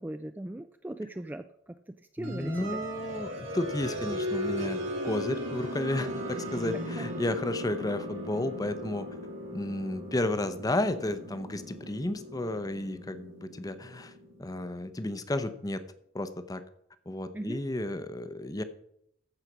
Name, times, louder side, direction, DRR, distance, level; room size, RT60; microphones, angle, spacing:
voice 1, 0.0-2.8 7.0-7.1 17.3-17.6, right 1 dB, 10° right, 9 dB, 0.3 m, -39 dB
voice 2, 2.2-9.1 9.5-14.1 14.4-15.8 16.1-16.6 17.1-18.6, left 1 dB, 20° left, 12 dB, 0.7 m, -32 dB
sound 1, 2.2-14.7, equal, 85° right, 2.8 m, -37 dB
14.5 x 4.9 x 6.1 m, 0.74 s
head